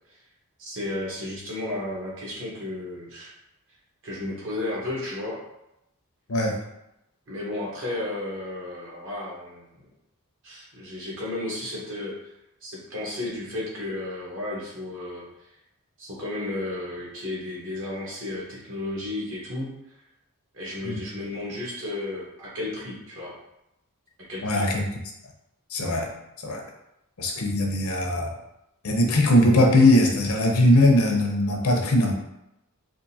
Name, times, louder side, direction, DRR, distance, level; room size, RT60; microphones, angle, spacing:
voice 1, 0.6-3.3 4.0-5.4 7.3-9.9 10.4-12.1 12.6-15.2 16.0-19.7 20.5-23.4 24.3-24.6, left 2 dB, 60° right, -5 dB, 1.2 m, -33 dB
voice 2, 6.3-6.6 20.8-21.0 24.4-24.8 25.7-26.1 26.4-26.6 27.2-28.3 28.8-32.1, left 1 dB, 70° left, 1 dB, 0.7 m, -20 dB
3.7 x 2.5 x 2.7 m, 0.86 s
head